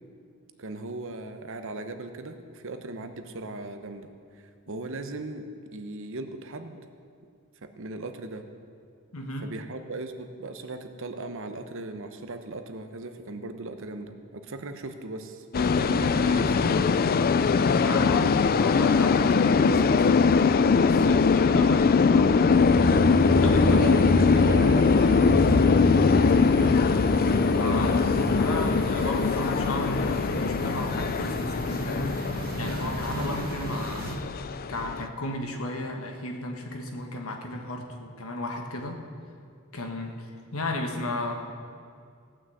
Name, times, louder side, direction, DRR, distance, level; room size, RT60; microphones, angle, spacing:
voice 1, 0.6-6.8 7.6-8.5 9.4-17.0 21.0-21.3 23.6-26.8 32.8-33.0, right 2 dB, 65° right, 8 dB, 1.0 m, -38 dB
voice 2, 9.1-9.5 17.6-20.1 20.7-22.4 23.4-23.8 27.5-28.0 28.3-32.2 32.6-34.1 34.7-39.0 39.7-40.3 40.5-41.3, left 1 dB, 70° left, 3 dB, 1.4 m, -34 dB
sound 1, 15.5-35.1, left 5 dB, 45° left, 0.4 m, -22 dB
sound 2, 22.5-34.2, right 1 dB, 45° right, 1.4 m, -30 dB
17.0 x 6.3 x 7.8 m, 2.3 s
head